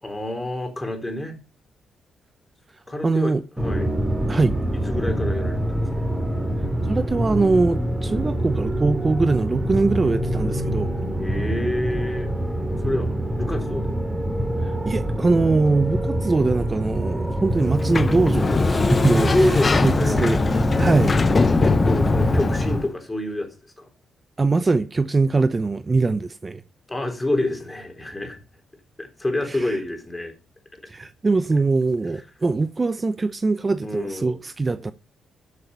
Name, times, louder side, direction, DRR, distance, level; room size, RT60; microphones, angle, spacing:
voice 1, 0.0-1.4 2.9-3.3 3.6-3.9 4.9-5.8 11.2-12.4 12.8-14.0 19.1-20.2 20.7-21.0 21.6-23.5 23.8-23.9 26.9-28.4 29.0-30.3 33.8-34.4, left 1 dB, 15° left, 3.9 m, -27 dB
voice 2, 3.0-3.4 4.3-4.6 6.8-10.9 14.6-20.5 20.8-21.1 24.4-26.6 29.5-29.8 30.9-34.9, right 3 dB, 30° right, 0.7 m, -22 dB
sound 1, 3.6-22.8, right 1 dB, 10° right, 4.1 m, -25 dB
Sliding door, 17.6-22.9, left 4 dB, 35° left, 0.9 m, -21 dB
13.0 x 7.1 x 5.4 m
cardioid pair, 80°, 0 cm